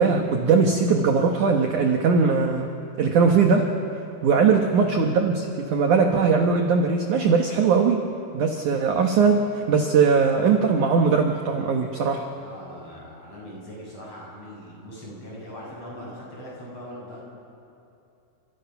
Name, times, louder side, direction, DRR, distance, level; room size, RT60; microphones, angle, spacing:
voice 1, 0.0-2.7 3.0-3.7 4.2-8.0 8.3-12.3, right 5 dB, 65° right, 3 dB, 2.0 m, -20 dB
voice 2, 4.2-4.7 12.3-17.2, equal, 30° left, -4 dB, 7.9 m, -41 dB
29.0 x 25.0 x 5.9 m, 2.7 s
omnidirectional pair, 5.2 m